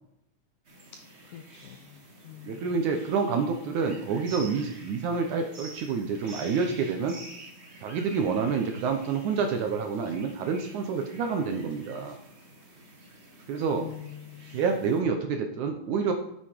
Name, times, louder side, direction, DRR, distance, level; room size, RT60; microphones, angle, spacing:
sound 1, 0.6-15.0, right 2 dB, 55° right, 0.7 m, -49 dB
voice 1, 1.3-2.0 2.3-2.8 13.8-14.6, left 11 dB, 80° left, 6 dB, 1.8 m, -44 dB
voice 2, 2.4-7.2 7.8-12.2 13.5-13.9 14.5-16.1, right 5 dB, 70° right, 5 dB, 2.0 m, -28 dB
9.1 x 8.8 x 4.6 m, 0.77 s
omnidirectional pair, 4.3 m